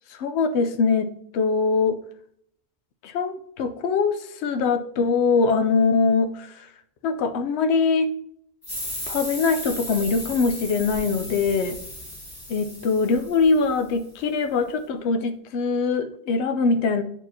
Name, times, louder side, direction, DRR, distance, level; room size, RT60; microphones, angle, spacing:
voice 1, 0.2-2.0 3.0-6.7 7.0-8.1 9.1-11.8 12.5-17.0, left 4 dB, 80° left, 8 dB, 0.9 m, -22 dB
sound 1, 8.6-13.9, left 1 dB, 20° left, 2.0 m, -36 dB
10.0 x 4.5 x 2.7 m, 0.69 s
omnidirectional pair, 1.1 m